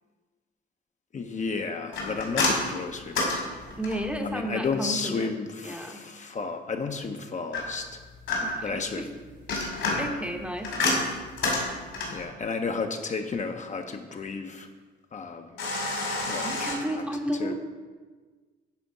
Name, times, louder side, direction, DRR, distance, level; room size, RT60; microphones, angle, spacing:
voice 1, 1.1-3.4 4.2-8.0 8.6-9.1 9.9-10.1 12.1-14.7 15.1-15.6 16.3-16.6 17.0-17.1 17.4-17.5, left 4 dB, 40° left, 5 dB, 0.6 m, -32 dB
sound 1, 1.9-4.2 7.5-8.8 9.3-12.3 15.6-16.8, left 2 dB, 70° left, 2.4 m, -29 dB
voice 2, 3.8-5.3 5.6-6.1 8.4-9.1 10.0-11.1 16.4-17.5, equal, 5° right, 4 dB, 0.8 m, -33 dB
10.0 x 3.5 x 5.3 m, 1.4 s
cardioid pair, 90°, 20 cm